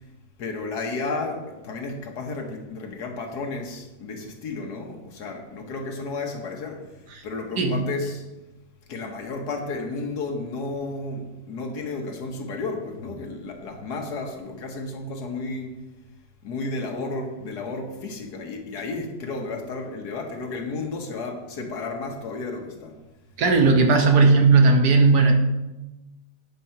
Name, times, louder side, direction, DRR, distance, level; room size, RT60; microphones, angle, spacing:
voice 1, 0.4-6.9 7.2-8.2 8.9-15.8 16.4-23.0, left 3 dB, 65° left, 1.6 m, -32 dB
voice 2, 23.4-25.3, right 3 dB, 65° right, 1.5 m, -16 dB
9.0 x 4.4 x 5.7 m
omnidirectional pair, 1.9 m